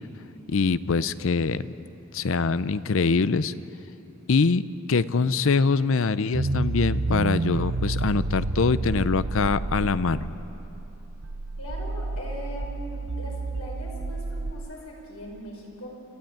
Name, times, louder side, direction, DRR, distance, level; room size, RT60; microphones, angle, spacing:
voice 1, 0.5-1.7 2.1-3.5 4.3-4.6 4.9-10.3, left 4 dB, 65° left, 15 dB, 0.6 m, -23 dB
sound 1, 6.3-14.7, right 3 dB, 60° right, 0.7 m, -30 dB
voice 2, 11.6-15.9, left 1 dB, 80° left, -1 dB, 5.6 m, -40 dB
27.5 x 13.5 x 8.9 m, 3.0 s
head